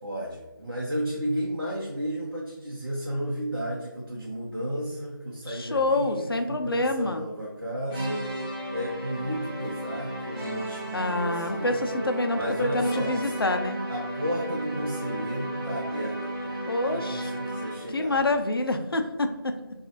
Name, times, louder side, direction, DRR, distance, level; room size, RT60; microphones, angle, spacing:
voice 1, 0.0-8.3 8.7-11.8 12.3-13.3 13.9-18.3, equal, 75° right, -5 dB, 0.7 m, -33 dB
voice 2, 5.5-7.2 10.9-13.8 16.7-17.3 17.9-19.6, left 2 dB, 85° left, 6 dB, 0.4 m, -27 dB
sound 1, 7.9-18.0, right 1 dB, 10° left, 0.4 m, -34 dB
2.5 x 2.3 x 2.8 m, 1.1 s
figure-of-eight pair, 165°, 12 cm